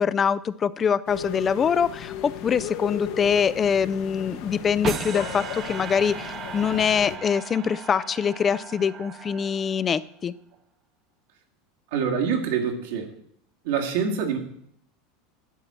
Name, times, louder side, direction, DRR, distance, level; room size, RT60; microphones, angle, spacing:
voice 1, 0.0-10.3, left 7 dB, 25° left, 17 dB, 0.4 m, -24 dB
sound 1, 1.1-7.2, left 9 dB, 60° left, 1.1 m, -36 dB
sound 2, 4.8-10.0, right 7 dB, 30° right, 0.7 m, -36 dB
voice 2, 11.9-13.1 13.6-14.4, right 6 dB, 75° right, 1 dB, 2.0 m, -25 dB
12.0 x 4.3 x 7.5 m, 0.70 s
supercardioid pair, 140°, 0 cm